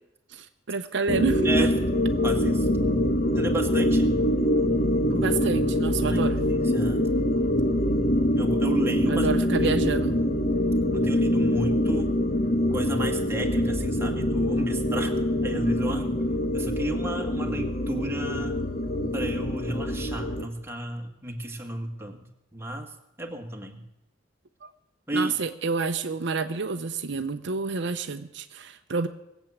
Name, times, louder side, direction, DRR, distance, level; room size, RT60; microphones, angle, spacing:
voice 1, 0.3-1.7 5.1-6.4 9.1-10.2 24.6-24.7 25.1-29.1, right 4 dB, 65° right, 8 dB, 0.7 m, -29 dB
sound 1, 1.1-20.5, left 1 dB, 50° left, 1.4 m, -24 dB
voice 2, 2.2-2.7 3.4-4.1 6.1-7.1 8.4-9.3 9.6-10.0 10.9-12.2 12.7-15.1 15.4-16.2 16.5-18.6 19.1-22.2 22.5-22.9 23.2-23.8 25.1-25.3, right 1 dB, 15° right, 2 dB, 1.7 m, -32 dB
20.0 x 8.2 x 7.3 m, 0.86 s
head